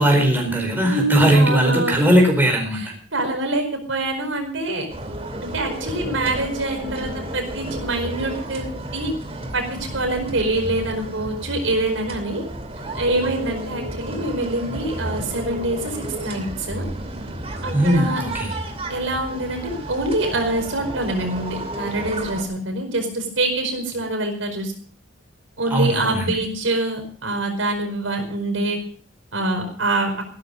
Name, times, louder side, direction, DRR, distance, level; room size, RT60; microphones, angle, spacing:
voice 1, 0.0-2.9 17.7-18.5 25.7-26.4, right 1 dB, 10° right, 1 dB, 4.5 m, -18 dB
voice 2, 0.8-2.0 2.8-4.9 5.4-8.7 8.9-9.1 9.5-9.6 9.9-12.4 12.9-16.9 17.6-18.2 18.9-24.7 25.6-28.8 29.3-30.1, right 2 dB, 80° right, 3 dB, 4.9 m, -25 dB
sound 1, 4.9-22.4, right 1 dB, 30° right, 2.6 m, -32 dB
15.5 x 13.0 x 5.2 m, 0.44 s
head